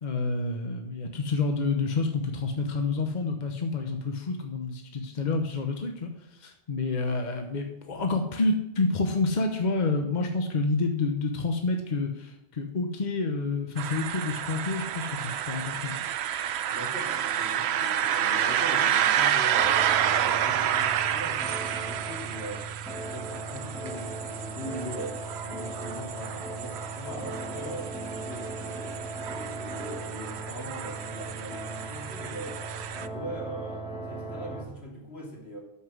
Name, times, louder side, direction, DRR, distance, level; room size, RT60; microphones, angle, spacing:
voice 1, 0.0-15.9, left 3 dB, 45° left, 4 dB, 1.1 m, -28 dB
sound 1, 13.8-33.1, right 10 dB, 90° right, 0.9 m, -30 dB
voice 2, 16.7-19.8 20.1-22.7 23.0-32.6 32.9-35.6, equal, 80° left, -2 dB, 3.3 m, -41 dB
sound 2, 19.6-34.6, right 2 dB, 5° right, 1.9 m, -38 dB
13.0 x 5.8 x 6.2 m, 0.84 s
omnidirectional pair, 1.1 m